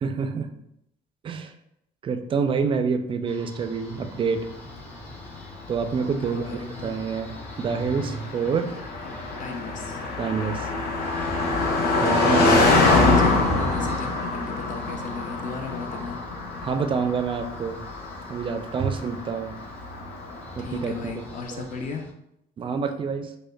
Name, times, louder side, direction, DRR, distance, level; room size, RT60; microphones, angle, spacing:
voice 1, 0.0-0.5 1.2-1.5 2.0-4.4 5.7-6.5 6.8-8.7 10.2-10.7 12.0-13.3 16.6-17.8 18.3-19.5 20.6-21.2 21.5-21.7 22.6-23.3, right 5 dB, 30° right, 8 dB, 0.3 m, -27 dB
sound 1, 3.2-22.1, equal, 10° left, 0.7 m, -44 dB
Car passing by, 4.4-20.9, left 3 dB, 75° left, 0.8 m, -25 dB
voice 2, 6.2-7.0 8.2-8.6 9.0-10.0 12.1-16.2 20.6-22.0, left 5 dB, 50° left, 3 dB, 0.6 m, -36 dB
4.9 x 2.1 x 2.2 m, 0.80 s
cardioid pair, 110°, 17 cm